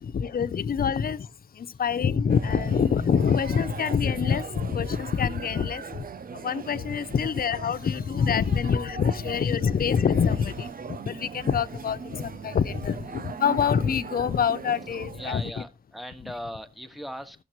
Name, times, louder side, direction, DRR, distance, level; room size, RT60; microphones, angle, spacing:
voice 1, 0.0-1.3 1.6-6.1 6.3-10.7 11.1-15.4, left 7 dB, 75° left, 0.5 m, -25 dB
sound 1, 2.3-15.5, right 5 dB, 70° right, 0.6 m, -40 dB
voice 2, 15.1-17.4, equal, ahead, 1.4 m, -39 dB
15.0 x 6.5 x 3.0 m
cardioid pair, 45°, 15 cm